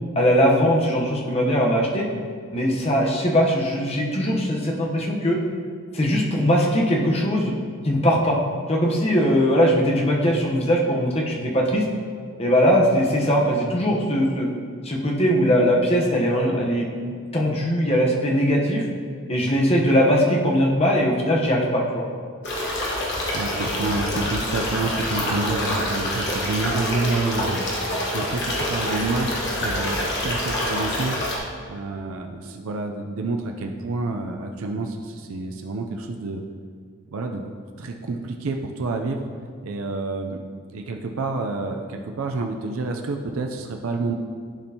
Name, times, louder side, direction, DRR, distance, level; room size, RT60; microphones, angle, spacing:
voice 1, 0.1-2.1 2.5-5.4 5.9-7.5 7.8-8.4 8.7-11.9 12.4-14.5 14.8-16.9 17.3-18.9 19.3-22.1, equal, 30° left, -1 dB, 0.8 m, -20 dB
sound 1, 22.4-31.4, left 1 dB, 55° left, 1.2 m, -26 dB
voice 2, 23.3-27.6 28.1-31.2 31.7-36.4 37.1-37.5 37.8-39.3 39.6-40.4 40.7-44.2, right 3 dB, 75° right, 3 dB, 0.5 m, -28 dB
11.5 x 4.4 x 2.8 m, 2.1 s
head